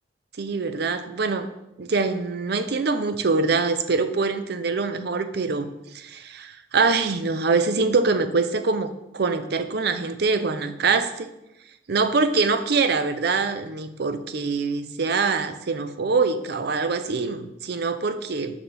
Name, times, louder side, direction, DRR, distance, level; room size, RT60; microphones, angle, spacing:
voice 1, 0.4-1.5 1.8-5.7 5.9-11.3 11.9-18.5, right 4 dB, 60° right, 10 dB, 0.6 m, -24 dB
6.1 x 5.9 x 5.1 m, 0.89 s
head